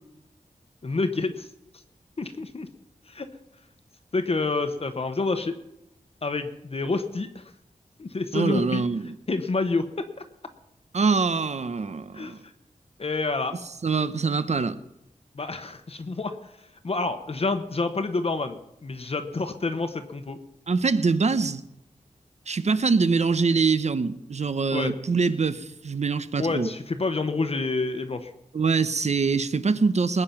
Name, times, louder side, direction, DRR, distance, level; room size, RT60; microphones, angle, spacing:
voice 1, 0.8-1.5 2.2-2.7 3.1-3.3 4.1-5.5 6.2-7.4 8.0-8.8 9.3-10.1 12.1-12.3 13.0-13.5 15.3-16.3 16.8-20.4 24.7-24.9 26.4-28.3, left 3 dB, 45° left, 1.0 m, -28 dB
voice 2, 8.3-9.2 10.9-12.4 13.8-14.8 20.7-21.6 22.5-26.7 28.5-30.2, right 4 dB, 55° right, 0.8 m, -24 dB
20.5 x 8.8 x 5.9 m
wide cardioid pair, 100°, 14 cm